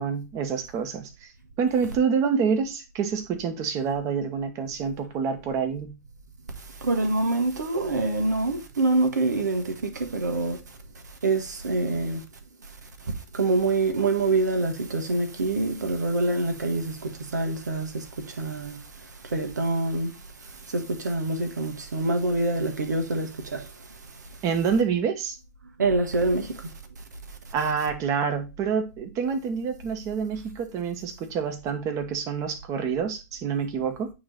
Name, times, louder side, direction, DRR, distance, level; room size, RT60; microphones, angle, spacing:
voice 1, 0.0-1.3 1.6-6.0 24.4-25.4 27.5-34.1, right 6 dB, 35° right, 1.3 m, -27 dB
voice 2, 6.8-10.6 11.2-12.2 13.1-18.8 19.2-20.1 20.5-23.7 25.8-26.7, right 2 dB, 85° right, 1.4 m, -26 dB
9.4 x 3.2 x 3.9 m
hypercardioid pair, 110°, 9 cm